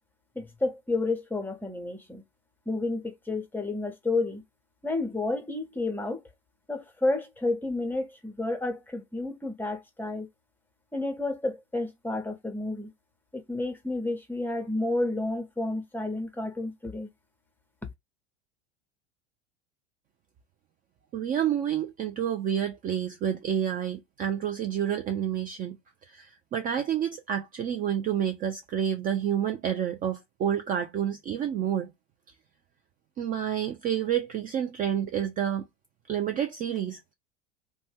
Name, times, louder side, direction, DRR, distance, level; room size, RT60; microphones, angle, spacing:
voice 1, 0.4-2.2 2.7-4.4 4.8-6.2 6.7-10.3 10.9-12.9 13.3-17.1, left 2 dB, 5° left, 0.8 m, -31 dB
voice 2, 21.1-25.8 26.1-31.9 33.2-35.7 36.1-37.1, right 9 dB, 25° right, 0.4 m, -29 dB
2.6 x 2.2 x 3.2 m
figure-of-eight pair, 80°, 35 cm